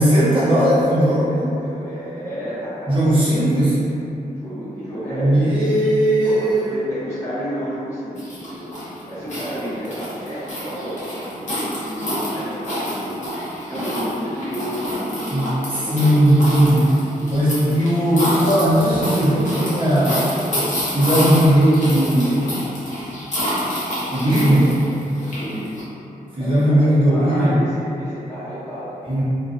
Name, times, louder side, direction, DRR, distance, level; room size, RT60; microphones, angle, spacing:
voice 1, 0.0-1.5 2.9-3.8 5.1-6.6 15.3-15.5 15.9-16.9 17.3-20.2 20.9-22.5 24.1-24.7 26.4-27.5 29.0-29.2, right 1 dB, 35° right, -11 dB, 0.7 m, -17 dB
voice 2, 1.0-3.4 4.2-5.6 6.2-16.2 25.3-25.7 26.4-28.9, equal, 20° left, -14 dB, 1.0 m, -31 dB
sound 1, 8.2-25.8, equal, 50° left, 0.7 m, -28 dB
2.3 x 2.3 x 2.4 m, 2.8 s
wide cardioid pair, 175°, 15 cm